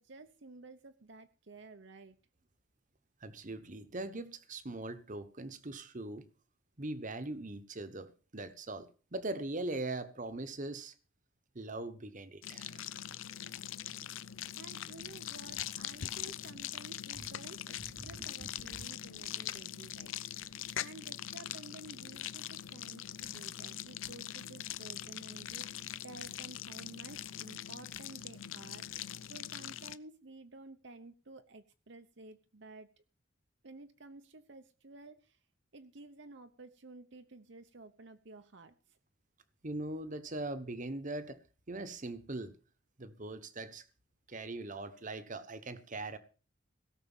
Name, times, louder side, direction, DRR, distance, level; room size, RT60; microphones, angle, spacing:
voice 1, 0.0-2.2 14.6-32.9 33.6-35.4 35.7-39.0, right 2 dB, 65° right, 0.9 m, -53 dB
voice 2, 3.2-6.2 6.8-10.9 11.5-12.8 18.0-18.5 39.6-41.4 41.7-42.5 43.0-43.8 44.3-46.2, right 2 dB, 40° right, 1.2 m, -41 dB
sound 1, 12.4-30.0, left 11 dB, 85° left, 0.6 m, -42 dB
17.0 x 6.6 x 7.2 m
head